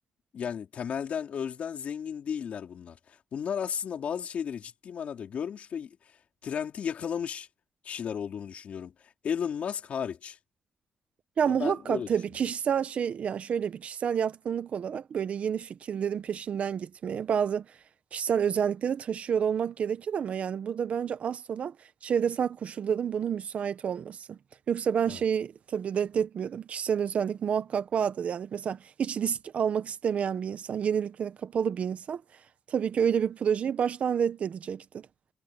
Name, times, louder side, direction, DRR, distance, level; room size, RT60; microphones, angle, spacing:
voice 1, 0.3-6.0 6.4-7.5 7.8-10.4 11.5-12.1 25.0-25.2, left 7 dB, 60° left, 4.0 m, -34 dB
voice 2, 11.4-17.7 18.1-21.7 22.0-24.4 24.7-32.2 32.7-35.1, right 7 dB, 60° right, 1.2 m, -29 dB
cardioid pair, 110°, 3 cm